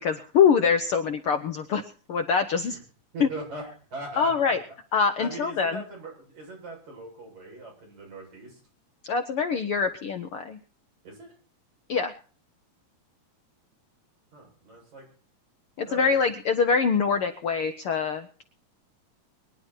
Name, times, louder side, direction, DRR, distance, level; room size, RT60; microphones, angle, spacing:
voice 1, 0.0-1.8 2.1-2.8 3.2-3.3 4.2-4.6 4.9-5.8 9.0-10.6 11.9-12.1 15.8-18.4, left 6 dB, 65° left, 8 dB, 1.4 m, -24 dB
voice 2, 3.1-4.5 5.2-8.6 11.0-11.4 14.3-15.1 15.9-16.2, right 2 dB, 65° right, -1 dB, 8.7 m, -40 dB
23.5 x 10.5 x 4.4 m, 0.41 s
omnidirectional pair, 3.4 m